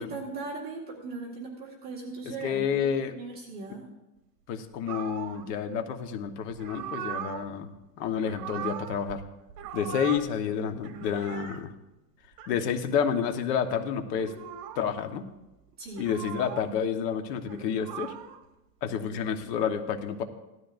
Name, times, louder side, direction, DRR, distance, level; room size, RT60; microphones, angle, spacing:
voice 1, 0.0-3.9 15.8-16.1 19.1-19.2, right 3 dB, 20° right, -4 dB, 1.9 m, -39 dB
voice 2, 2.4-3.1 4.5-7.7 8.0-9.2 9.7-11.7 12.5-14.3 14.7-15.2 16.0-18.1 18.8-20.2, left 7 dB, 70° left, 6 dB, 1.5 m, -29 dB
sound 1, 4.9-5.5 6.5-7.5 8.1-9.2 9.5-10.3 10.7-11.6 12.2-12.5 14.1-14.9 15.9-16.7 17.3-18.4 19.3-19.7, right 10 dB, 70° right, 1.5 m, -40 dB
17.0 x 13.0 x 2.6 m, 0.99 s
supercardioid pair, 180°, 50 cm